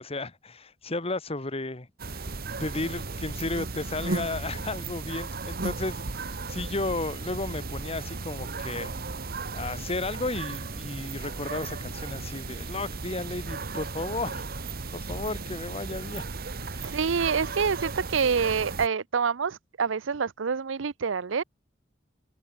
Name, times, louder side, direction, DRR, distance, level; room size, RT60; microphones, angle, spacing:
voice 1, 0.0-1.9 2.6-8.9 9.5-14.4 14.9-16.3 16.8-17.0, left 2 dB, 30° left, 1.8 m, -33 dB
sound 1, 2.0-18.9, right 3 dB, 55° right, 1.4 m, -35 dB
voice 2, 16.8-21.4, right 6 dB, 85° right, 0.6 m, -27 dB
head